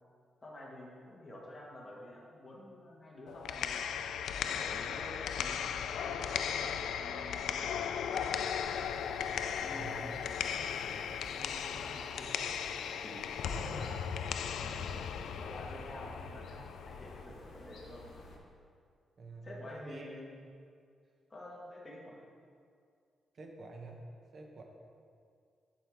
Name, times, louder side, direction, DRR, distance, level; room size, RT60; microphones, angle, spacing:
voice 1, 0.4-3.8 4.5-8.4 9.6-11.1 11.3-12.3 13.0-14.1 14.6-15.0 15.4-18.1 19.4-20.3 21.3-22.2, left 1 dB, 20° left, -4 dB, 1.3 m, -49 dB
sound 1, 3.3-17.3, left 8 dB, 80° left, 0.3 m, -37 dB
sound 2, 7.9-18.4, left 2 dB, 65° left, 1.3 m, -53 dB
voice 2, 9.7-10.0 13.5-13.7 19.2-20.1 23.3-24.0 24.3-24.6, right 3 dB, 40° right, 2 dB, 0.8 m, -47 dB
11.5 x 4.6 x 3.5 m, 2.2 s
wide cardioid pair, 165°, 0 cm